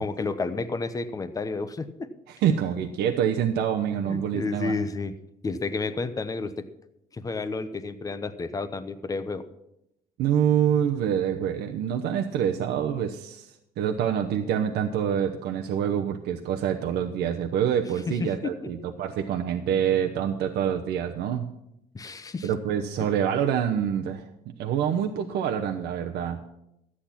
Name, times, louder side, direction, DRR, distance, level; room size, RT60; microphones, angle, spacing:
voice 1, 0.0-2.1 4.0-5.1 5.4-6.5 7.1-9.4 18.1-18.5 21.9-22.5 23.0-23.1, left 3 dB, 20° left, 10 dB, 0.9 m, -31 dB
voice 2, 2.3-4.7 10.2-21.4 22.4-24.3 24.6-26.4, right 9 dB, 80° right, 3 dB, 0.9 m, -26 dB
12.5 x 8.7 x 5.8 m, 0.83 s
cardioid pair, 110°, 17 cm